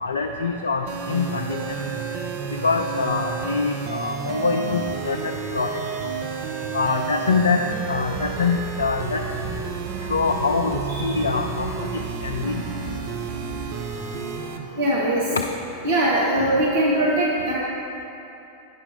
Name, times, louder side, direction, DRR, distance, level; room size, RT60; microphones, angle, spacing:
voice 1, 0.0-1.6 2.6-5.8 6.7-9.2 10.1-11.9 12.2-12.6 15.3-15.4, left 4 dB, 70° left, 4 dB, 0.3 m, -24 dB
sound 1, 0.9-14.6, right 5 dB, 45° right, 0.7 m, -30 dB
voice 2, 14.8-15.2 15.8-17.5, right 1 dB, 60° right, -5 dB, 1.1 m, -21 dB
8.9 x 5.9 x 4.4 m, 2.8 s
figure-of-eight pair, 90°, 0 cm